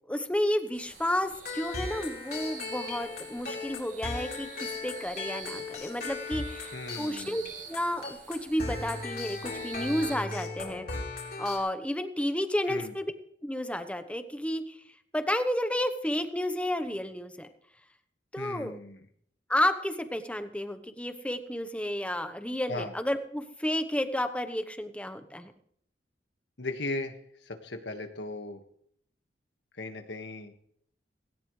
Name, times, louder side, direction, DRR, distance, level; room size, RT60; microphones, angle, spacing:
voice 1, 0.1-7.4 7.7-10.9 11.4-13.1 13.4-14.8 15.1-17.5 18.3-18.8 19.5-25.5, left 1 dB, 5° left, 9 dB, 1.0 m, -31 dB
sound 1, 0.7-10.2, right 5 dB, 50° right, 2.1 m, -48 dB
sound 2, 1.4-11.6, left 3 dB, 60° left, 4.1 m, -37 dB
voice 2, 6.7-7.5 12.7-12.9 18.4-19.0 22.7-22.9 26.6-27.1 27.4-28.6 29.8-30.5, left 2 dB, 90° left, 6 dB, 1.8 m, -37 dB
17.5 x 17.5 x 3.3 m, 0.66 s
head